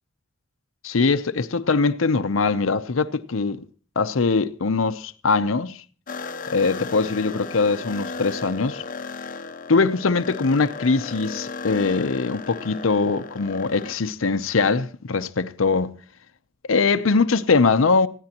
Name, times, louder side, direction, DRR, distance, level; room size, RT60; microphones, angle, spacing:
voice 1, 0.8-3.6 4.0-5.8 6.5-8.8 9.7-16.0 16.7-18.1, left 4 dB, 85° left, 0.7 m, -22 dB
sound 1, 6.1-13.9, left 4 dB, 45° left, 0.8 m, -35 dB
20.5 x 16.0 x 2.9 m
head